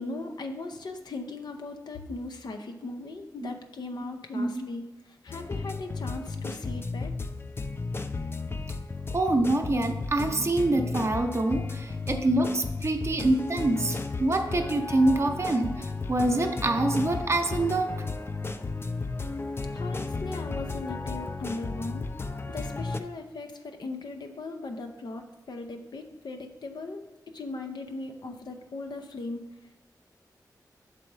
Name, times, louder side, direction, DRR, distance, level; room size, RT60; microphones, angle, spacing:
voice 1, 0.0-7.1 19.7-22.1 22.5-27.0 27.3-29.4, left 2 dB, 80° left, 5 dB, 0.5 m, -38 dB
sound 1, 5.3-23.0, left 3 dB, 35° left, 0.4 m, -34 dB
voice 2, 9.1-15.7 16.1-17.9, right 2 dB, 40° right, 4 dB, 0.6 m, -25 dB
6.4 x 4.1 x 4.7 m, 1.0 s
wide cardioid pair, 65°, 7 cm